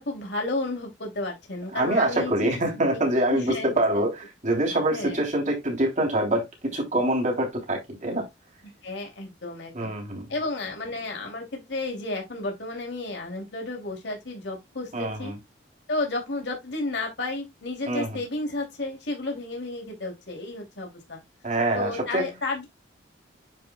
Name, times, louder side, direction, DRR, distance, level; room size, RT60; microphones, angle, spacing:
voice 1, 0.0-2.6 3.3-4.1 4.9-5.2 8.6-9.9 10.3-15.3 15.9-21.2 21.7-22.7, left 2 dB, 70° left, 2.9 m, -32 dB
voice 2, 1.7-8.3 9.7-10.3 14.9-15.4 17.9-18.2 21.4-22.3, right 1 dB, 40° right, 3.3 m, -25 dB
9.6 x 4.8 x 2.3 m
head